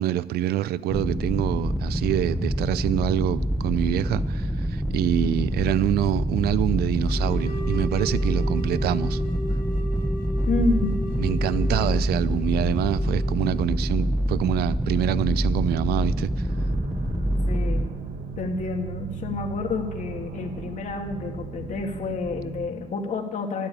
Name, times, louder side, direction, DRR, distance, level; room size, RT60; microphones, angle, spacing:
voice 1, 0.0-9.2 11.2-16.5, right 12 dB, 70° right, 0.5 m, -26 dB
sound 1, 0.9-17.9, equal, ahead, 0.8 m, -26 dB
sound 2, 7.1-13.9, right 1 dB, 75° left, 3.1 m, -37 dB
voice 2, 10.5-10.9 11.8-11.9 17.4-17.9 18.4-23.7, left 3 dB, 45° left, 2.6 m, -29 dB
sound 3, 16.5-22.7, right 5 dB, 55° right, 1.6 m, -37 dB
12.0 x 12.0 x 8.7 m
cardioid pair, 110°, 17 cm